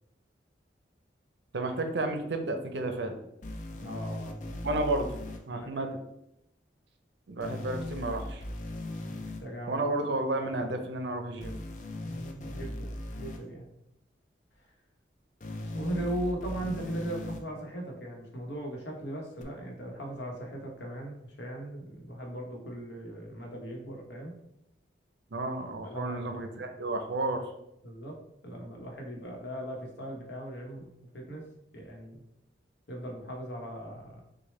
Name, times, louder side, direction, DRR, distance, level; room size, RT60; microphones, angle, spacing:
voice 1, 1.5-3.2 4.6-5.1 5.5-5.9 7.3-8.4 9.7-11.6 25.3-27.4, right 2 dB, 75° right, 5 dB, 0.6 m, -32 dB
sound 1, 3.4-5.4 7.4-9.4 11.4-13.4 15.4-17.4 19.4-19.5, left 1 dB, 40° left, 0.4 m, -38 dB
voice 2, 3.8-4.5 5.5-5.8 9.1-9.8 12.0-13.7 15.7-24.3 25.8-26.2 27.8-28.2 28.4-30.8 31.1-31.5 31.7-32.2 32.9-34.2, right 1 dB, 70° left, 1 dB, 1.0 m, -38 dB
6.4 x 2.2 x 3.2 m, 0.83 s
head